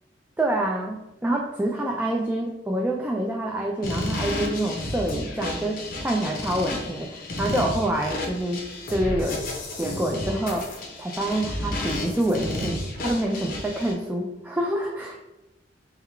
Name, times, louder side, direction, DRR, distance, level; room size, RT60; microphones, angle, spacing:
voice 1, 0.4-8.6 8.9-9.4 9.8-10.7 11.0-15.2, right 1 dB, 10° right, -1 dB, 0.3 m, -27 dB
sound 1, 3.8-13.9, left 1 dB, 50° left, 0.8 m, -32 dB
3.7 x 2.3 x 4.3 m, 0.97 s
head